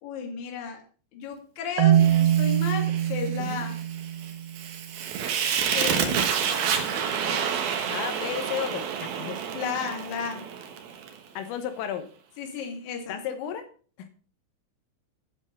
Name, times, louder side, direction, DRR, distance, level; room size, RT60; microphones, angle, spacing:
voice 1, 0.0-0.8 1.1-3.8 5.7-6.2 9.5-10.5 12.4-13.2, left 6 dB, 50° left, 3 dB, 2.5 m, -33 dB
Marimba xylophone, 1.8-4.8, right 11 dB, 90° right, 2.4 m, -23 dB
Fire, 1.9-11.2, right 7 dB, 70° right, 2.4 m, -29 dB
voice 2, 5.9-6.6 7.3-7.5 7.9-9.4 11.4-12.1 13.1-13.7 14.0-14.1, left 9 dB, 80° left, 8 dB, 3.7 m, -34 dB
10.0 x 7.6 x 5.4 m, 0.42 s
omnidirectional pair, 5.9 m